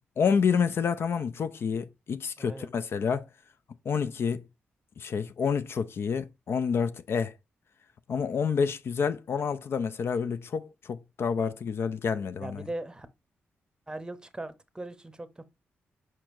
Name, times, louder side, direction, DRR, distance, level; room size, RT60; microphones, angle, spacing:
voice 1, 0.2-3.2 3.9-4.4 5.0-7.3 8.1-12.6, left 6 dB, 60° left, 0.4 m, -28 dB
voice 2, 2.4-2.7 12.4-13.1 13.9-15.4, right 2 dB, 15° right, 0.7 m, -39 dB
4.7 x 4.4 x 2.5 m
supercardioid pair, 50°, 5 cm